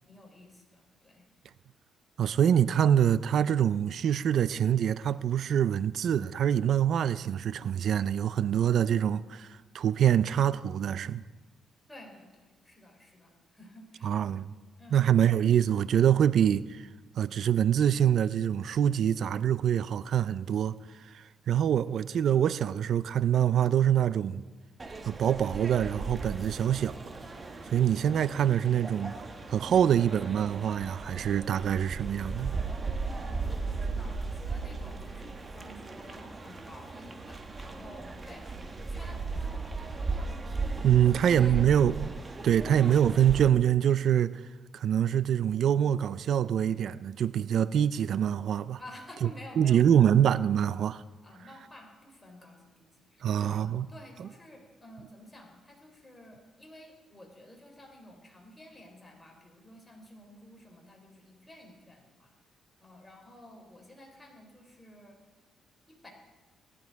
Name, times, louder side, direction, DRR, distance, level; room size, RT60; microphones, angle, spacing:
voice 1, 0.1-1.2 11.9-14.3 14.8-15.0 33.1-40.3 40.9-41.7 48.8-50.1 51.2-62.3 62.8-65.2 65.9-66.1, left 1 dB, 10° left, 3.6 m, -52 dB
voice 2, 2.2-11.2 14.0-14.5 14.9-16.8 17.2-20.7 21.0-24.4 25.1-27.0 27.7-29.2 29.5-32.5 40.8-42.1 42.4-44.4 44.7-48.8 49.6-51.0 53.2-53.9 54.2-54.3, right 9 dB, 65° right, 0.4 m, -25 dB
sound 1, 24.8-43.5, right 3 dB, 25° right, 1.4 m, -37 dB
18.5 x 11.0 x 4.7 m
cardioid pair, 90°, 0 cm